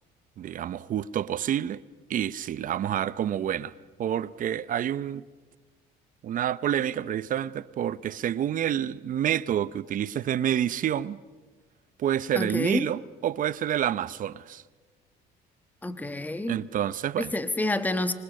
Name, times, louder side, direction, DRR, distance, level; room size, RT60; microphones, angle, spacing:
voice 1, 0.4-1.8 2.1-3.7 4.0-5.2 6.2-11.2 12.0-14.6 16.5-17.4, right 10 dB, 50° right, 0.8 m, -28 dB
voice 2, 12.3-12.9 15.8-16.6 17.3-18.1, left 2 dB, 10° left, 1.4 m, -28 dB
26.0 x 25.0 x 6.6 m
cardioid pair, 110°, 17 cm